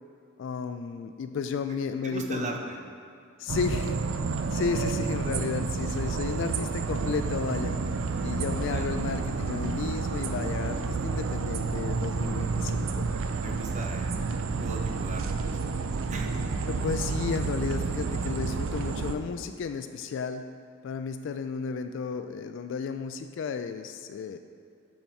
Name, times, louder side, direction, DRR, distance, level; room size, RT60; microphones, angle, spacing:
voice 1, 0.4-2.5 3.4-4.0 4.5-7.8 8.2-13.1 16.7-20.5 20.8-24.4, left 5 dB, 65° left, 9 dB, 0.3 m, -33 dB
voice 2, 2.0-2.8 8.7-8.9 13.4-14.3 14.6-15.2 15.7-16.4, right 2 dB, 35° right, 1 dB, 0.8 m, -38 dB
sound 1, 3.5-19.1, right 4 dB, 75° right, 0.4 m, -30 dB
8.7 x 4.3 x 4.5 m, 2.5 s
head